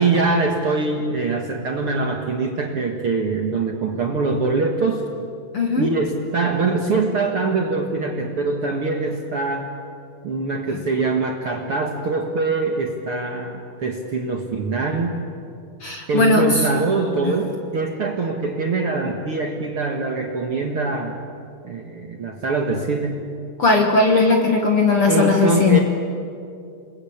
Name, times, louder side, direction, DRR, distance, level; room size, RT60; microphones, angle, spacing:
voice 1, 0.0-5.0 5.7-9.7 10.2-15.2 16.1-21.2 21.6-23.3 25.1-25.8, right 3 dB, 60° right, 2 dB, 1.5 m, -23 dB
voice 2, 5.5-5.9 10.7-10.8 15.8-16.6 17.2-17.3 23.6-25.8, left 3 dB, 60° left, 3 dB, 1.4 m, -17 dB
27.5 x 21.5 x 8.6 m, 2.5 s
omnidirectional pair, 4.9 m